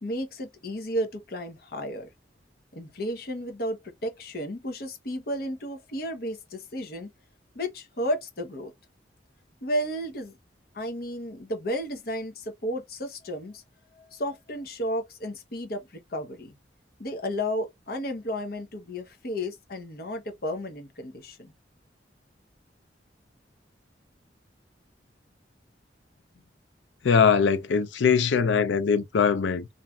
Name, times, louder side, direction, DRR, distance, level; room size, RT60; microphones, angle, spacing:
voice 1, 0.0-2.1 2.7-7.1 7.5-8.7 9.6-10.3 10.7-13.6 13.9-16.6 17.0-21.5, equal, 55° left, 0.8 m, -33 dB
voice 2, 27.0-29.7, left 6 dB, 85° left, 0.5 m, -22 dB
3.1 x 2.6 x 2.3 m
head